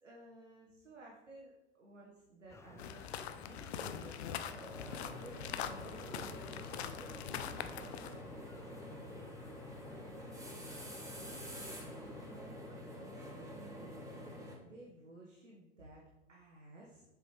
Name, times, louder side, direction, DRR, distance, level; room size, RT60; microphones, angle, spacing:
voice 1, 0.0-4.2 4.7-8.6 8.9-9.3 10.7-16.0 16.3-17.0, right 1 dB, 85° right, -4 dB, 1.6 m, -56 dB
sound 1, 2.5-12.8, left 3 dB, 10° left, 0.6 m, -56 dB
sound 2, 2.8-8.2, left 9 dB, 60° left, 0.7 m, -43 dB
sound 3, 4.4-14.6, equal, 10° right, 1.8 m, -48 dB
7.5 x 7.3 x 3.3 m, 0.97 s
figure-of-eight pair, 90°, 36 cm